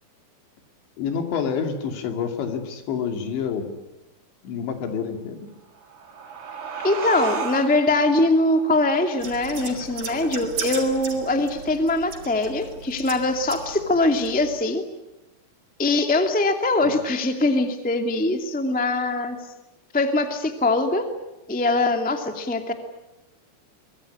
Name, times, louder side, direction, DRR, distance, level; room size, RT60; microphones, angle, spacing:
voice 1, 1.0-3.7 4.4-5.5 16.8-16.9, left 6 dB, 85° left, 6 dB, 4.9 m, -28 dB
sound 1, 5.6-10.8, right 5 dB, 65° right, 5.2 m, -35 dB
voice 2, 6.8-14.8 15.8-19.4 19.9-21.1 21.5-22.7, left 2 dB, 5° left, 6 dB, 0.9 m, -22 dB
sound 2, 9.2-14.6, right 5 dB, 45° right, 5.0 m, -36 dB
25.0 x 22.0 x 9.9 m, 0.98 s
omnidirectional pair, 5.1 m